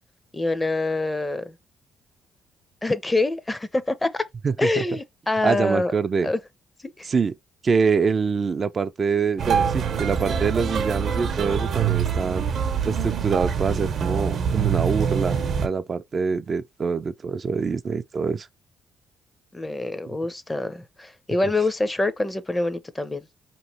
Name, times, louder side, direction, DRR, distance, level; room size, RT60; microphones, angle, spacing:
voice 1, 0.3-1.5 2.8-4.3 4.6-5.9 6.2-6.4 7.0-7.1 19.5-23.3, left 2 dB, 15° left, 0.6 m, -25 dB
voice 2, 4.4-4.8 5.4-6.3 7.0-7.3 7.6-12.5 12.8-18.5 20.1-20.2, right 5 dB, 40° right, 0.4 m, -25 dB
sound 1, 9.4-15.7, right 7 dB, 60° right, 0.8 m, -24 dB
4.8 x 3.0 x 2.8 m
cardioid pair, 90°, 0 cm